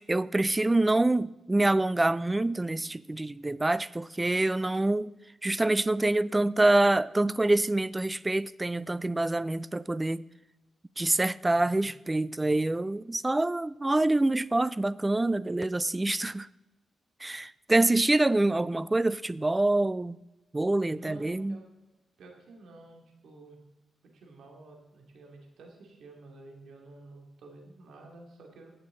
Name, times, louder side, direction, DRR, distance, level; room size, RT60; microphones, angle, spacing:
voice 1, 0.0-5.1 5.4-10.2 11.0-16.5 17.2-20.2 20.5-21.6, right 2 dB, 20° right, 0.4 m, -26 dB
voice 2, 11.5-11.9 20.9-21.6 22.2-23.6 24.1-28.7, right 2 dB, 75° right, 2.4 m, -50 dB
16.5 x 6.7 x 3.9 m
cardioid pair, 75°, 0 cm